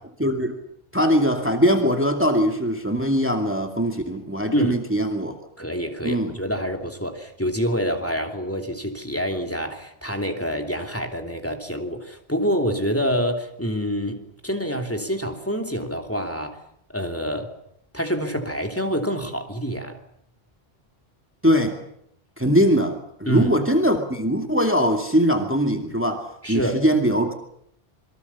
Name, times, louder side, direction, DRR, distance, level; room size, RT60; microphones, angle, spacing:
voice 1, 0.2-0.6 0.9-5.4 6.0-6.4 21.4-21.8 22.4-27.3, equal, 10° right, 2.3 m, -21 dB
voice 2, 5.6-16.6 16.9-17.5 17.9-20.0 23.3-23.5 26.4-26.8, equal, 15° left, 2.8 m, -26 dB
27.5 x 23.5 x 7.1 m
omnidirectional pair, 1.1 m